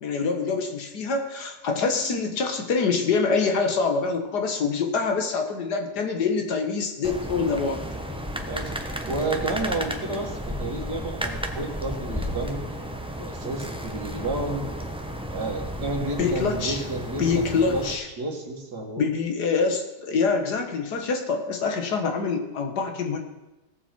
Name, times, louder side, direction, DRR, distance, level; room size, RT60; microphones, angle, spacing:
voice 1, 0.0-7.8 16.2-16.8 17.2-18.1 19.0-23.2, left 4 dB, 85° left, 4 dB, 2.0 m, -25 dB
sound 1, 7.0-17.9, equal, 5° right, 0.7 m, -33 dB
voice 2, 8.5-12.6 13.2-14.7 15.3-17.4 17.7-17.8 18.2-19.1, right 2 dB, 85° right, 1 dB, 2.6 m, -31 dB
17.5 x 7.3 x 4.5 m, 1.0 s
omnidirectional pair, 1.7 m